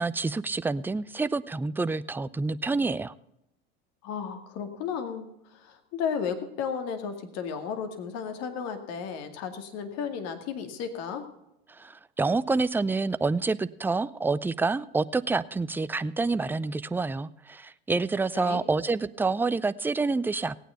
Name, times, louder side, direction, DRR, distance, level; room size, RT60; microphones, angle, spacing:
voice 1, 0.0-3.1 11.8-20.7, right 3 dB, 5° right, 15 dB, 0.4 m, -28 dB
voice 2, 4.0-11.2 18.3-18.6, left 7 dB, 55° left, 7 dB, 2.2 m, -34 dB
17.0 x 9.1 x 5.7 m, 0.84 s
hypercardioid pair, 95°, 30 cm